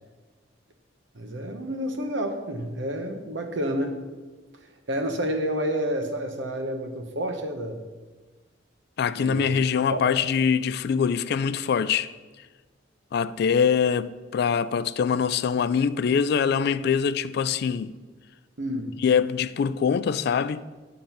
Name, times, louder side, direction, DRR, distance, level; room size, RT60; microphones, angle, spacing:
voice 1, 1.1-4.0 4.5-7.8 9.1-9.5 9.9-10.0 18.6-18.9, equal, 75° right, 1.0 m, -29 dB
voice 2, 9.0-12.1 13.1-17.9 19.0-20.6, left 6 dB, 55° left, 0.3 m, -23 dB
9.2 x 3.9 x 7.0 m
head